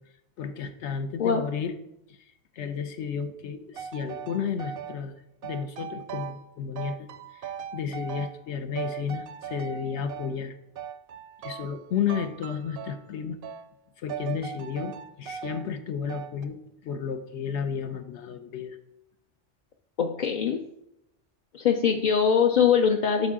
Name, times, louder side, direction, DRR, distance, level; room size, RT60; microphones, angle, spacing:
voice 1, 0.4-1.7 2.1-5.1 5.4-10.6 11.4-13.4 14.0-18.8, left 7 dB, 70° left, 8 dB, 1.0 m, -32 dB
sound 1, 3.7-5.0 5.4-6.5 6.8-8.5 8.8-10.3 10.8-11.8 12.1-13.1 13.4-13.7 14.1-15.7 16.1-16.5, right 8 dB, 65° right, 0.7 m, -39 dB
voice 2, 20.0-20.6 21.5-23.3, left 7 dB, 50° left, 3 dB, 0.6 m, -22 dB
12.0 x 4.7 x 3.7 m, 0.81 s
omnidirectional pair, 1.3 m